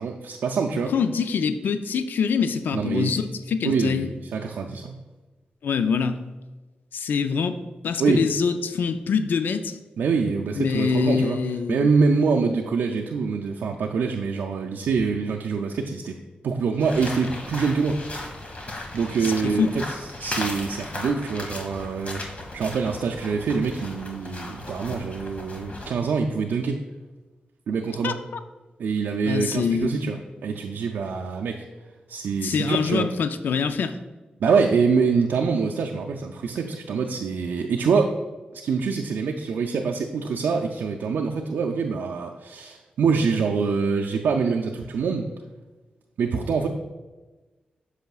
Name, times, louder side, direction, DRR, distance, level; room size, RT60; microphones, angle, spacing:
voice 1, 0.0-0.9 2.7-3.1 3.6-5.0 8.0-8.2 10.0-11.4 11.7-16.2 16.4-18.0 18.9-26.8 27.7-28.2 28.8-31.6 32.1-33.1 34.4-38.2 38.5-45.3 46.2-46.7, right 5 dB, 85° right, 1 dB, 0.4 m, -25 dB
voice 2, 0.9-4.1 5.6-6.2 6.9-9.8 10.5-11.9 19.4-19.7 28.0-28.2 29.3-30.2 32.4-34.0, left 6 dB, 80° left, 10 dB, 0.4 m, -25 dB
sound 1, 16.8-25.9, left 2 dB, 45° left, 1.4 m, -36 dB
7.9 x 6.3 x 2.3 m, 1.2 s
cardioid pair, 60°, 3 cm